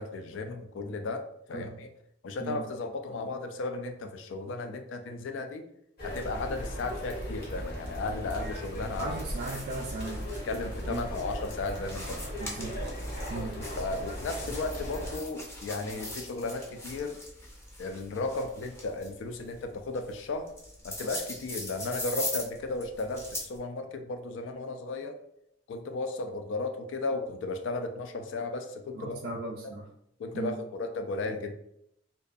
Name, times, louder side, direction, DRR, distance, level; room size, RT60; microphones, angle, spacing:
voice 1, 0.0-1.9 2.2-5.6 6.0-9.2 10.4-12.3 13.3-17.2 17.8-20.5 20.8-25.2 25.7-29.2 30.2-31.6, left 3 dB, 75° left, 6 dB, 0.3 m, -35 dB
sound 1, 6.0-15.2, equal, 55° left, 0.9 m, -37 dB
sound 2, 8.3-23.6, left 1 dB, 15° left, 0.5 m, -42 dB
voice 2, 9.0-10.3 10.8-11.0 12.4-12.8 13.3-13.6 28.9-29.9 30.3-30.6, right 3 dB, 55° right, -2 dB, 0.3 m, -37 dB
2.5 x 2.2 x 2.4 m, 0.76 s
head